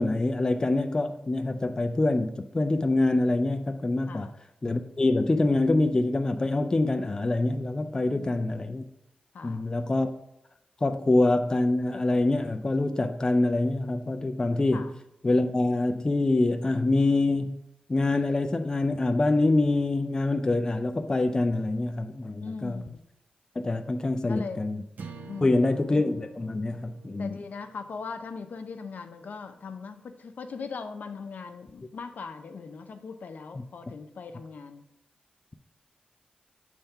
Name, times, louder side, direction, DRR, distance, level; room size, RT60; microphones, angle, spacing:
voice 1, 0.0-4.3 4.6-8.8 9.4-10.1 10.8-14.9 15.2-17.6 17.9-22.9 23.6-24.8 25.4-27.4 33.5-33.6, left 2 dB, 25° left, 7 dB, 0.4 m, -25 dB
voice 2, 9.3-9.7 14.7-14.9 22.4-23.0 24.3-24.6 25.3-25.8 27.2-34.8, left 5 dB, 70° left, 7 dB, 0.6 m, -40 dB
sound 1, 25.0-29.3, right 4 dB, 80° right, 0.8 m, -48 dB
7.2 x 3.4 x 5.5 m, 0.85 s
wide cardioid pair, 110°, 3 cm